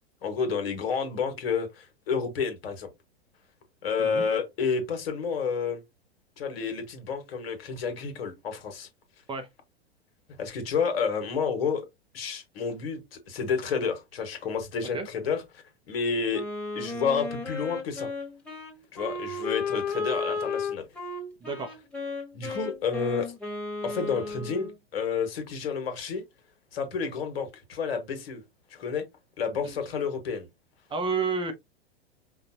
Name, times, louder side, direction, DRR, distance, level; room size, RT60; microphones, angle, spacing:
voice 1, 0.2-2.9 3.8-5.8 6.4-8.9 10.4-11.8 12.1-16.4 16.7-18.1 18.9-20.8 22.3-23.3 23.8-26.2 26.7-28.4 28.7-29.0 29.4-30.5, left 5 dB, 65° left, 1.6 m, -30 dB
Wind instrument woodwind instrument, 16.3-24.8, left 4 dB, 5° left, 1.5 m, -34 dB
voice 2, 21.4-21.8 29.6-29.7 30.9-31.5, right 4 dB, 15° right, 0.7 m, -30 dB
5.1 x 2.5 x 2.8 m
hypercardioid pair, 100°, 32 cm